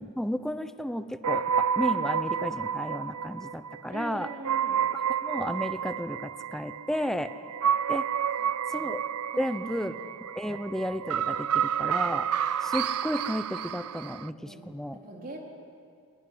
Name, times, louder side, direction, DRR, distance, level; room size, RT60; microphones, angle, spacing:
voice 1, 0.0-4.3 4.9-7.3 7.9-8.1 8.7-9.0 9.4-12.3 12.6-15.0, equal, ahead, 11 dB, 0.8 m, -33 dB
sound 1, 1.2-14.3, right 8 dB, 90° right, 0.5 m, -30 dB
voice 2, 3.8-4.8 8.4-8.8 9.3-10.0 14.5-14.6 14.9-15.4, right 1 dB, 40° right, -1 dB, 4.1 m, -42 dB
22.5 x 21.0 x 9.9 m, 2.3 s
head